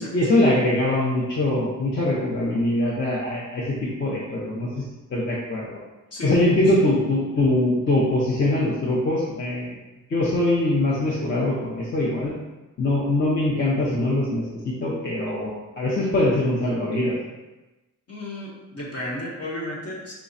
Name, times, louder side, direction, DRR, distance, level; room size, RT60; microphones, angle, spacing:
voice 1, 0.0-4.8 5.1-5.8 6.2-9.7 10.1-12.3 12.8-17.2, left 1 dB, 35° left, -6 dB, 0.7 m, -23 dB
voice 2, 18.1-20.1, left 1 dB, 50° left, -4 dB, 1.2 m, -33 dB
4.8 x 2.3 x 4.0 m, 1.1 s
wide cardioid pair, 145°, 31 cm